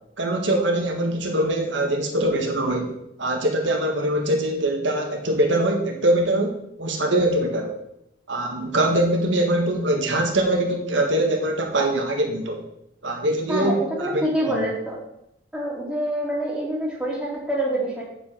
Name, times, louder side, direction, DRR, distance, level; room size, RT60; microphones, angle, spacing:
voice 1, 0.2-7.8 8.3-12.6 13.0-14.2 14.5-14.6, right 1 dB, 80° right, 2 dB, 1.7 m, -23 dB
voice 2, 13.5-15.0 15.5-18.0, right 1 dB, 5° right, -4 dB, 2.6 m, -26 dB
8.3 x 5.5 x 7.5 m, 0.80 s
head